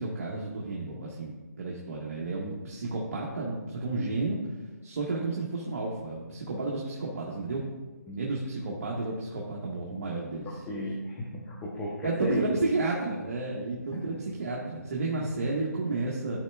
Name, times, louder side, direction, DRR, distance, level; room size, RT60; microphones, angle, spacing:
voice 1, 0.0-4.4 4.8-7.7 8.1-10.5 12.0-16.4, right 3 dB, 55° right, -4 dB, 1.2 m, -32 dB
voice 2, 10.4-12.4, left 1 dB, 10° left, -5 dB, 0.7 m, -35 dB
12.0 x 4.2 x 2.3 m, 1.3 s
hypercardioid pair, 160°, 10 cm